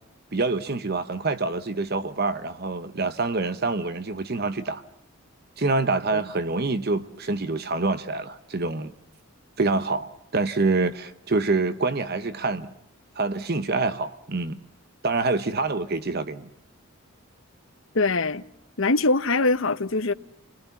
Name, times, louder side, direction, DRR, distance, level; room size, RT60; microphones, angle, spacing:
voice 1, 0.3-4.8 5.6-8.9 9.6-12.7 13.2-14.6 15.0-16.5, right 3 dB, 45° right, 0.9 m, -26 dB
voice 2, 17.9-18.4 18.8-20.1, left 3 dB, 65° left, 1.0 m, -22 dB
29.5 x 20.5 x 7.1 m
head